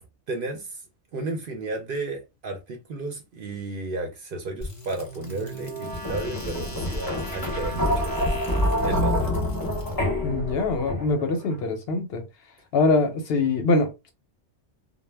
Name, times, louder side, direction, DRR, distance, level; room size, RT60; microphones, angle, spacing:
voice 1, 0.3-0.8 1.1-8.4 8.8-9.3, right 2 dB, 60° right, 0.6 m, -33 dB
sound 1, 4.6-11.3, left 1 dB, 25° left, 0.5 m, -27 dB
voice 2, 10.2-12.2 12.7-14.1, left 3 dB, 65° left, 0.7 m, -23 dB
2.1 x 2.0 x 3.2 m
omnidirectional pair, 1.2 m